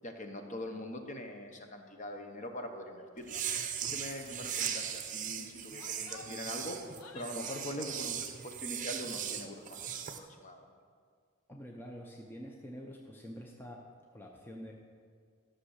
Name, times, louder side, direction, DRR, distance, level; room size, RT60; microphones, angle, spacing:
voice 1, 0.0-3.4 3.8-10.6, left 1 dB, 35° left, 4 dB, 0.9 m, -43 dB
sound 1, 3.2-10.2, right 9 dB, 35° right, 0.7 m, -38 dB
Female speech woman speaking / Yell, 3.5-3.8 4.1-4.2 4.5-4.8 5.5-8.0, left 4 dB, 85° left, 0.9 m, -54 dB
voice 2, 11.5-13.8 14.1-14.7, equal, 10° left, 0 dB, 0.6 m, -46 dB
12.5 x 6.4 x 6.5 m, 2.1 s
head